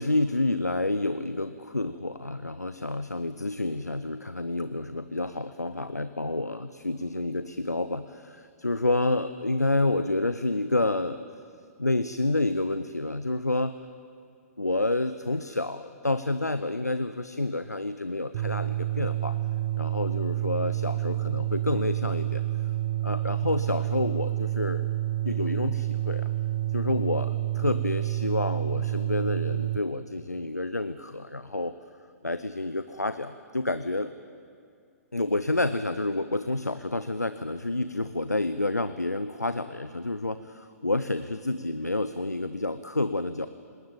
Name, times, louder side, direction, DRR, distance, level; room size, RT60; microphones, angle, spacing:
voice 1, 0.0-11.2 11.8-13.8 14.6-19.4 19.8-22.4 23.0-24.9 25.2-26.3 26.7-31.7 32.2-34.1 35.1-43.5, left 2 dB, 85° left, 12 dB, 0.7 m, -29 dB
sound 1, 18.3-29.8, right 13 dB, 40° right, 0.8 m, -29 dB
19.5 x 18.5 x 9.0 m, 2.2 s
figure-of-eight pair, 115°, 9 cm